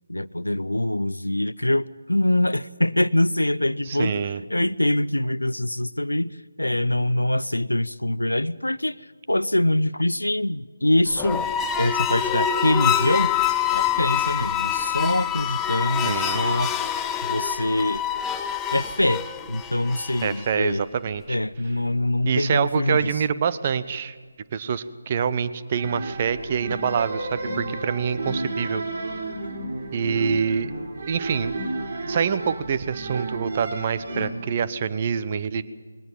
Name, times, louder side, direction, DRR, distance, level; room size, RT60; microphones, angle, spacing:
voice 1, 0.1-9.0 9.3-11.4 11.8-13.3 13.7-16.7 17.3-18.0 18.7-20.8 21.3-23.1, left 1 dB, 90° left, 15 dB, 0.6 m, -24 dB
voice 2, 3.9-4.4 16.0-16.4 20.2-21.4 22.2-24.2 24.5-28.8 29.9-30.7 31.1-31.5 32.1-35.6, right 7 dB, 30° right, 14 dB, 0.9 m, -26 dB
sound 1, 11.1-20.5, left 9 dB, 10° left, 0.7 m, -26 dB
sound 2, 25.7-34.3, right 2 dB, 55° right, 3.7 m, -32 dB
22.0 x 18.5 x 7.6 m, 1.5 s
figure-of-eight pair, 155°, 0 cm